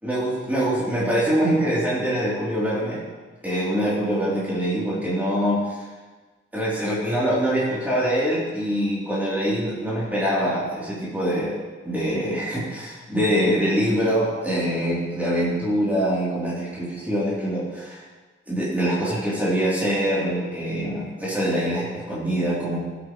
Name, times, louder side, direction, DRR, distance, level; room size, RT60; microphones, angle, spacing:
voice 1, 0.0-3.0 3.4-5.6 6.5-11.6 11.8-18.0 18.5-22.8, equal, 10° right, -8 dB, 3.4 m, -24 dB
15.5 x 9.0 x 3.2 m, 1.3 s
head